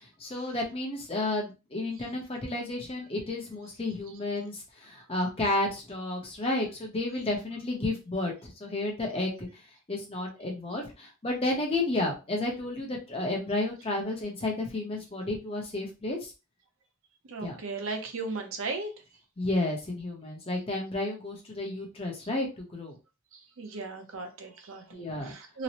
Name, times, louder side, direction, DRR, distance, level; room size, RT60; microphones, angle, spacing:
voice 1, 0.2-9.5 9.9-16.3 17.4-17.6 19.4-23.0 24.9-25.3, left 2 dB, 25° left, 0 dB, 0.7 m, -32 dB
voice 2, 17.3-18.9 23.3-25.6, right 3 dB, 80° right, 5 dB, 0.6 m, -36 dB
2.9 x 2.0 x 2.8 m, 0.29 s
head